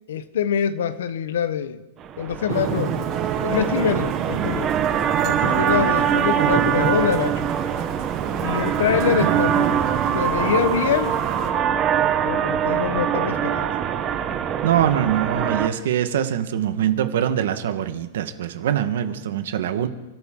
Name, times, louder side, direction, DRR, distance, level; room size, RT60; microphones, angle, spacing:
voice 1, 0.1-1.8 2.2-2.9 3.4-4.7 5.2-7.5 8.4-9.7 10.1-11.2 12.2-13.7, left 8 dB, 75° left, 13 dB, 1.1 m, -24 dB
sound 1, 2.0-15.7, right 9 dB, 20° right, 1.0 m, -23 dB
Thunder / Rain, 2.5-11.5, right 7 dB, 35° right, 4.3 m, -30 dB
voice 2, 9.1-9.5 14.6-19.9, right 10 dB, 65° right, 9 dB, 1.4 m, -23 dB
29.0 x 13.0 x 3.8 m, 1.1 s
supercardioid pair, 165°, 0 cm